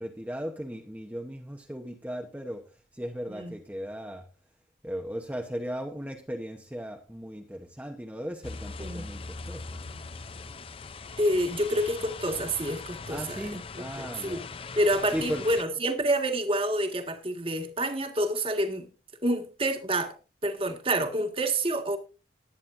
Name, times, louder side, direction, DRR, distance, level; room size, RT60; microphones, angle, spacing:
voice 1, 0.0-4.3 4.8-9.8 13.1-14.5 15.1-15.5, equal, 10° right, 0.9 m, -37 dB
sound 1, 8.4-15.6, left 4 dB, 30° left, 0.5 m, -41 dB
voice 2, 8.8-9.2 11.2-13.6 14.0-14.5 14.8-18.9 19.2-20.1 20.4-22.0, right 1 dB, 30° right, 1.7 m, -28 dB
20.0 x 9.1 x 2.6 m
head